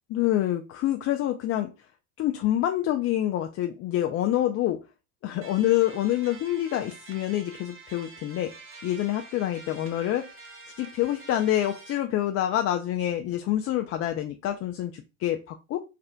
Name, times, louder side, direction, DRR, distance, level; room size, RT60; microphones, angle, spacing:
voice 1, 0.1-1.7 2.2-4.8 5.2-8.5 8.8-10.3 10.8-15.8, left 13 dB, 40° left, 5 dB, 0.5 m, -27 dB
sound 1, 5.4-12.0, right 3 dB, 35° right, 1.1 m, -47 dB
3.3 x 2.4 x 4.3 m, 0.28 s
hypercardioid pair, 90°, 38 cm